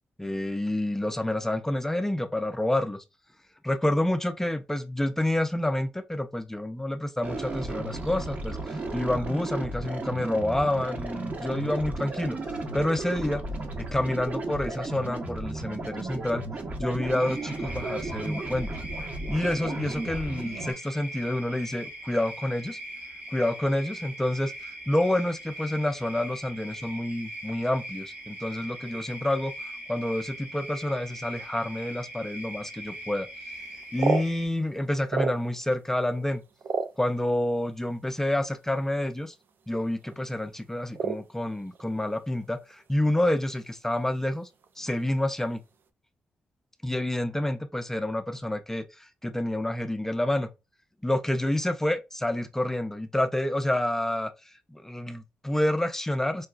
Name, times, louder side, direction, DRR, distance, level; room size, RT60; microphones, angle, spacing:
voice 1, 0.2-3.0 3.6-13.4 13.8-16.4 16.8-18.7 19.3-22.8 23.3-33.3 33.7-36.4 37.0-39.3 39.7-44.5 44.8-45.6 46.8-50.5 51.0-56.5, left 1 dB, 10° left, 0.4 m, -28 dB
sound 1, 7.2-20.7, right 2 dB, 45° right, 1.0 m, -34 dB
sound 2, 17.1-34.5, right 1 dB, 80° right, 1.9 m, -41 dB
sound 3, 33.6-35.8 36.1-37.6 38.4-38.5 38.7-39.0 39.3-39.8 40.0-40.3 40.9-41.9 42.2-43.1 43.4-43.5 43.9-44.2 44.6-45.0, right 5 dB, 60° right, 0.4 m, -32 dB
4.6 x 2.2 x 2.3 m
cardioid pair, 75°, 4 cm